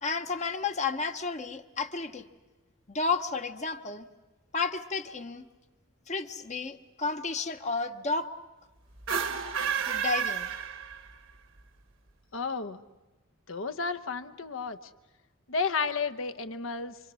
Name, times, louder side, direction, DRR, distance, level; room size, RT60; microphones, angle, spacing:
voice 1, 0.0-2.3 2.9-4.0 4.5-5.4 6.1-8.3 9.3-9.4 9.9-10.5, left 4 dB, 35° left, 7 dB, 0.9 m, -32 dB
sound 1, 9.0-11.3, right 7 dB, 65° right, 1.3 m, -31 dB
voice 2, 12.3-12.8 13.5-14.8 15.5-17.0, left 4 dB, 70° left, 11 dB, 1.0 m, -32 dB
27.5 x 26.0 x 6.3 m, 1.2 s
head